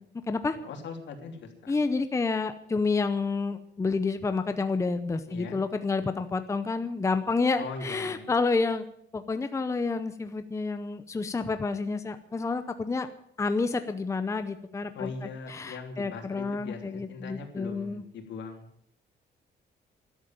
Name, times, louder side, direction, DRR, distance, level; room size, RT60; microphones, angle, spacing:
voice 1, 0.5-1.7 5.3-5.6 7.6-8.3 14.9-18.7, left 4 dB, 75° left, 4 dB, 3.1 m, -40 dB
voice 2, 1.7-8.8 9.1-13.1 13.4-15.1 15.5-18.0, left 4 dB, 15° left, 10 dB, 0.7 m, -29 dB
13.0 x 12.0 x 9.0 m, 0.72 s
cardioid pair, 170°, 19 cm